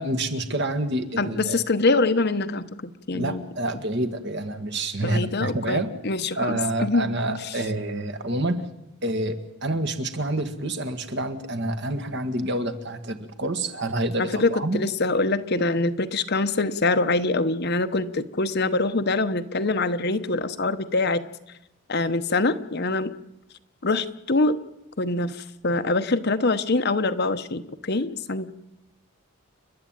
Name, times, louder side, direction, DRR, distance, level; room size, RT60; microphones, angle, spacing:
voice 1, 0.0-1.6 3.1-5.9 6.4-8.6 9.0-14.8, right 1 dB, 50° right, 7 dB, 1.8 m, -28 dB
voice 2, 1.2-3.4 5.0-7.6 14.2-21.2 21.9-23.1 23.8-24.6 25.0-28.5, left 2 dB, 45° left, 10 dB, 0.9 m, -24 dB
30.0 x 11.5 x 9.0 m, 0.92 s
head